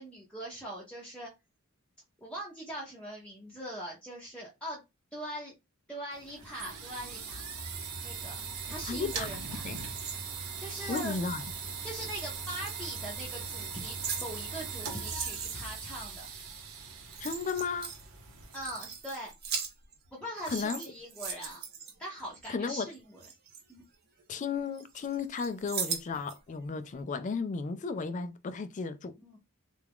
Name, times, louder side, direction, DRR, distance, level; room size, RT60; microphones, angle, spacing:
voice 1, 0.0-1.3 2.2-4.8 5.1-5.5 5.9-7.4 8.0-8.4 8.7-9.6 10.6-11.2 11.8-16.3 18.5-19.3 20.1-21.6 22.0-23.2 23.7-23.9 29.2-29.4, equal, 5° left, 0.7 m, -41 dB
sound 1, 6.1-18.9, right 5 dB, 75° right, 0.9 m, -40 dB
sound 2, 8.5-11.3 12.0-13.0 13.6-15.8 16.7-16.8 17.0-18.1 18.4-20.1 20.4-22.5 22.9-24.4 24.7-26.4 26.8-26.9, right 6 dB, 45° right, 0.8 m, -40 dB
voice 2, 8.9-9.3 9.6-9.8 10.9-11.4 17.2-17.9 20.5-20.9 22.5-22.9 24.3-29.2, left 5 dB, 35° left, 0.3 m, -34 dB
3.4 x 2.3 x 3.5 m
head